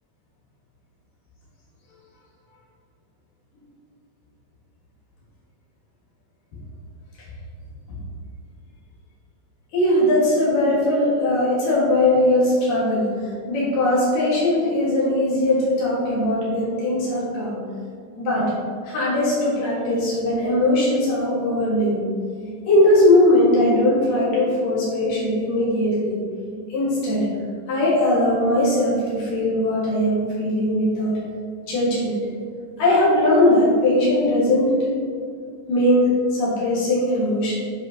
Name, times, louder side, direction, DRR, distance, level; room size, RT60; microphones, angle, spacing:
voice 1, 9.7-17.6 18.2-18.5 18.8-22.0 22.7-26.2 26.7-27.3 27.7-31.2 31.7-32.2 32.8-34.7 35.7-37.5, left 1 dB, 80° left, -8 dB, 3.4 m, -20 dB
9.7 x 5.3 x 2.8 m, 2.2 s
omnidirectional pair, 3.8 m